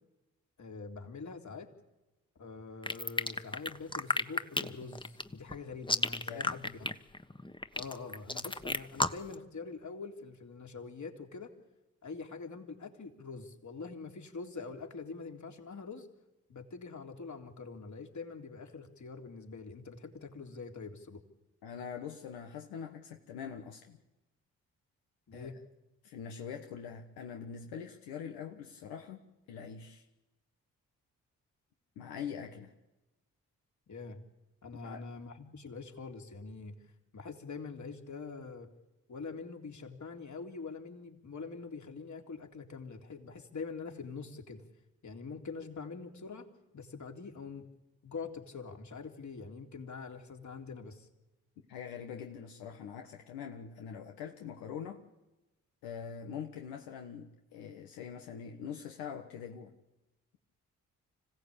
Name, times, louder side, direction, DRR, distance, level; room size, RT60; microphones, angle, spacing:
voice 1, 0.6-1.7 2.4-6.9 7.7-11.5 12.0-16.1 16.5-21.2 25.3-25.6 33.9-34.2 34.6-36.8 37.1-38.7 39.1-44.6 45.0-46.5 46.7-47.7 48.0-51.1, left 4 dB, 55° left, 3 dB, 3.6 m, -44 dB
sound 1, 2.8-9.3, left 2 dB, 15° left, 1.4 m, -32 dB
voice 2, 6.3-6.6 21.6-24.0 25.3-25.5 26.0-29.2 29.5-30.0 32.0-32.7 34.8-35.0 51.7-55.0 55.8-59.7, left 7 dB, 85° left, 3 dB, 1.4 m, -43 dB
26.0 x 16.5 x 8.7 m, 1.0 s
hypercardioid pair, 45°, 36 cm